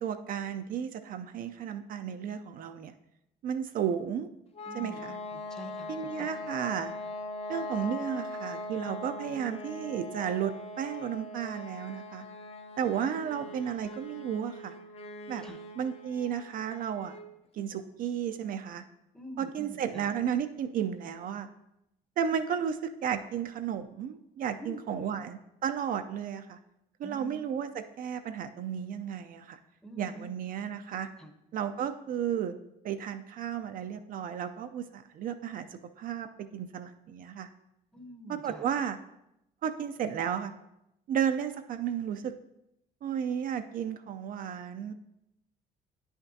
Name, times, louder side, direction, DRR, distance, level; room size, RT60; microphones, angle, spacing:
voice 1, 0.0-2.9 3.4-4.3 4.7-5.2 5.9-6.9 7.5-12.3 12.8-14.7 15.3-15.4 15.8-17.2 17.5-18.8 19.4-21.5 22.2-26.6 27.0-29.6 30.0-31.1 31.5-32.6 32.8-37.5 38.3-39.0 39.6-40.5 41.1-42.3 43.0-44.9, right 8 dB, 55° right, 8 dB, 0.4 m, -33 dB
sound 1, 4.5-17.3, left 2 dB, 35° left, 0.6 m, -41 dB
voice 2, 4.7-6.4 13.2-13.5 15.4-15.6 19.1-20.1 24.6-25.1 27.0-27.4 29.8-30.3 31.2-31.3 37.9-38.7, equal, 5° left, 5 dB, 0.8 m, -46 dB
9.3 x 5.7 x 2.7 m, 0.85 s
cardioid pair, 110°, 17 cm